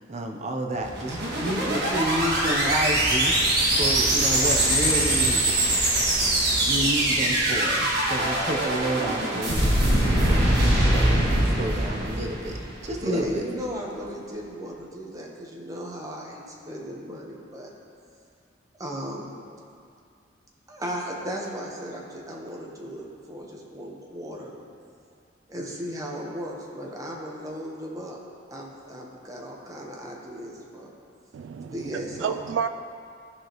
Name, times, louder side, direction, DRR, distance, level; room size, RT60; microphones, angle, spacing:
voice 1, 0.0-5.4 6.7-9.8 10.3-13.4, right 1 dB, 40° right, 2 dB, 0.7 m, -30 dB
sound 1, 0.7-13.1, right 1 dB, 60° right, 1.7 m, -23 dB
voice 2, 13.0-17.7 18.8-19.3 20.7-24.5 25.5-28.2 28.5-30.9 31.7-32.3, equal, 20° right, -2 dB, 1.1 m, -36 dB
voice 3, 31.3-32.7, right 7 dB, 90° right, 10 dB, 0.3 m, -30 dB
14.0 x 4.9 x 3.0 m, 2.4 s
head